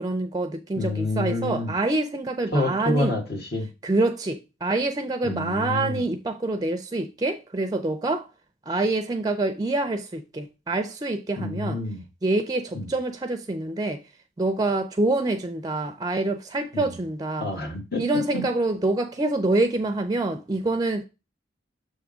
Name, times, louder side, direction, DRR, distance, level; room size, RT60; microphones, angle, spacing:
voice 1, 0.0-3.2 3.8-8.3 8.7-11.8 12.2-14.0 14.4-17.5 18.0-21.0, right 2 dB, 20° right, 0.4 m, -26 dB
voice 2, 0.8-1.8 2.5-3.7 5.2-6.0 11.4-12.0 12.7-12.9 16.7-17.0 17.4-18.0 18.3-18.4, left 2 dB, 60° left, 1.7 m, -28 dB
6.6 x 3.5 x 5.0 m
head